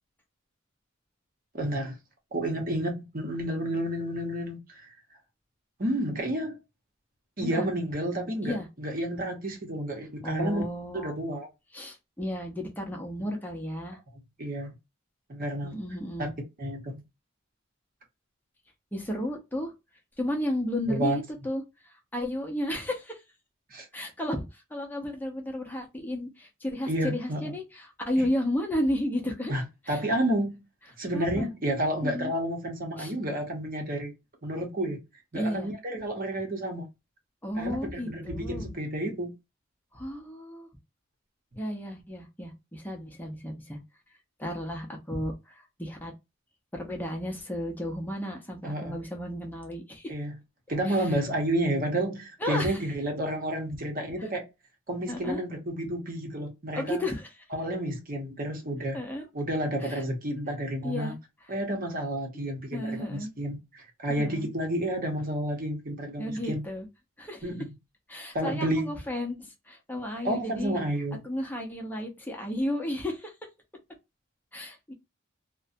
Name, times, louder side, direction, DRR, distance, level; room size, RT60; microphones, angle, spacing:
voice 1, 1.5-2.0 2.3-4.9 5.8-6.6 7.4-10.6 10.9-11.5 14.4-14.7 15.3-15.8 16.2-16.3 16.6-17.0 20.9-21.2 23.7-23.9 26.9-27.5 28.2-28.3 29.5-30.6 31.0-34.1 34.4-35.0 35.3-36.9 37.6-39.3 48.6-49.0 50.1-50.3 50.7-54.5 54.9-57.0 57.5-59.0 59.3-61.1 61.5-66.6 67.4-67.7 68.3-68.9 70.2-71.2, right 1 dB, 45° right, 0.9 m, -30 dB
voice 2, 10.2-11.1 11.7-14.0 15.6-16.3 18.9-19.7 20.2-23.2 23.9-29.5 29.9-30.0 31.1-31.5 32.0-32.3 33.0-33.1 35.3-35.7 37.4-38.7 39.9-40.7 41.6-43.8 44.4-46.1 46.7-50.1 50.8-51.1 52.4-52.8 55.1-55.4 56.7-57.3 58.9-59.2 59.8-60.0 60.8-61.1 62.3-62.4 62.7-63.3 64.1-64.5 66.2-66.9 67.2-67.5 68.1-70.8 71.2-73.3 74.5-74.9, left 1 dB, 10° left, 0.7 m, -33 dB
2.6 x 2.2 x 2.6 m
head